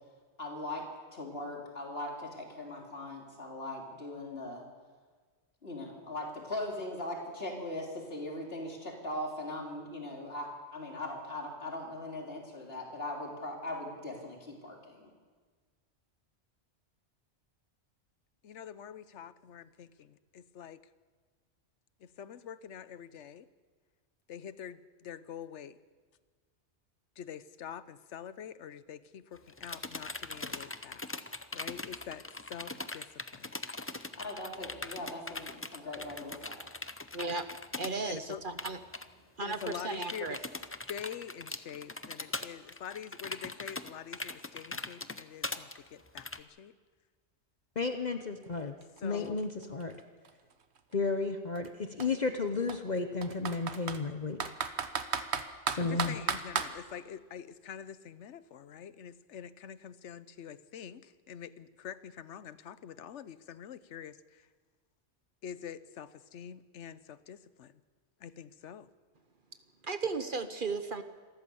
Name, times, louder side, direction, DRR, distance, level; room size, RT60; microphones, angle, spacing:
voice 1, 0.4-4.6 5.6-15.1 34.1-36.6, left 1 dB, 55° left, -1 dB, 3.8 m, -40 dB
voice 2, 18.4-20.8 22.0-23.5 24.3-25.8 27.2-31.1 31.5-33.5 38.0-38.4 39.4-40.4 40.9-46.7 49.0-49.4 55.8-64.5 65.4-67.7 68.2-68.9, left 8 dB, 80° left, 15 dB, 1.1 m, -45 dB
sound 1, 29.4-37.9 38.2-38.3 38.6-39.0 39.5-46.4, left 2 dB, 15° left, 0.5 m, -41 dB
voice 3, 37.1-37.4 37.8-38.8 39.4-39.6 39.8-40.4 69.8-71.0, right 4 dB, 50° right, 9 dB, 1.1 m, -35 dB
voice 4, 47.8-48.7 49.0-49.9 50.9-54.4 55.7-56.2, left 4 dB, 40° left, 7 dB, 1.0 m, -33 dB
Computer keyboard, 48.4-48.5 48.8-50.8 51.5-51.7 52.0-52.1 52.7-54.0 54.4-56.7, right 6 dB, 70° right, 1.3 m, -34 dB
26.5 x 14.0 x 7.1 m, 1.5 s
omnidirectional pair, 1.2 m